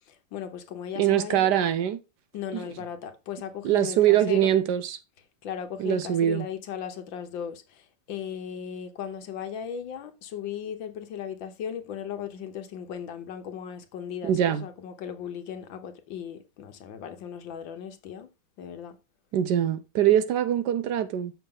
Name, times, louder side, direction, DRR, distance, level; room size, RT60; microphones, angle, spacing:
voice 1, 0.1-1.5 2.3-4.5 5.4-18.3 18.6-19.0, left 8 dB, 80° left, 1.7 m, -37 dB
voice 2, 1.0-2.0 2.5-2.6 3.6-5.0 5.8-6.5 14.2-14.7 19.3-21.3, right 11 dB, 70° right, 1.1 m, -23 dB
7.1 x 5.9 x 3.7 m
omnidirectional pair, 2.1 m